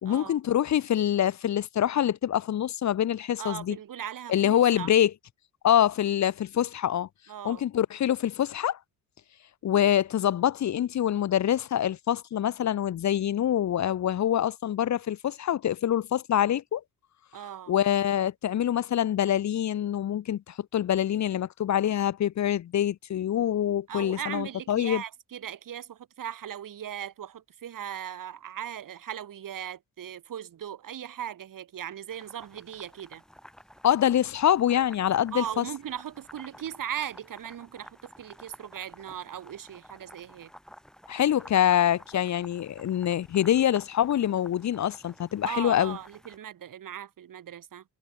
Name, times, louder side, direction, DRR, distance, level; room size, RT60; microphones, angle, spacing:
voice 1, 0.0-3.8 4.3-5.1 5.6-7.1 7.4-8.8 9.6-16.8 17.7-25.0 33.8-35.6 41.1-46.0, left 10 dB, 55° left, 0.8 m, -25 dB
voice 2, 3.4-4.9 7.3-7.6 17.3-17.7 23.9-33.2 35.3-40.5 45.4-47.8, right 10 dB, 70° right, 5.1 m, -38 dB
sound 1, 32.1-46.4, equal, ahead, 2.8 m, -52 dB
wide cardioid pair, 140°, 34 cm